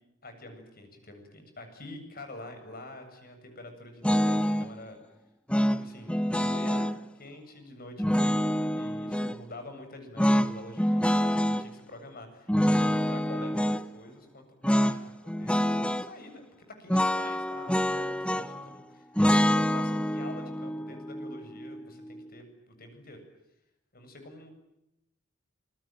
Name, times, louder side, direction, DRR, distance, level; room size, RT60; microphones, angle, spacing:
voice 1, 0.2-5.0 5.5-12.5 12.8-23.2 23.9-24.6, left 1 dB, 50° left, 6 dB, 7.8 m, -47 dB
sound 1, 4.0-4.7 5.5-7.0 8.0-9.4 10.2-11.7 12.5-13.8 14.6-15.0 15.3-16.1 16.9-18.7 19.2-22.2, equal, 5° left, 0.9 m, -26 dB
27.5 x 22.5 x 9.2 m, 0.87 s
head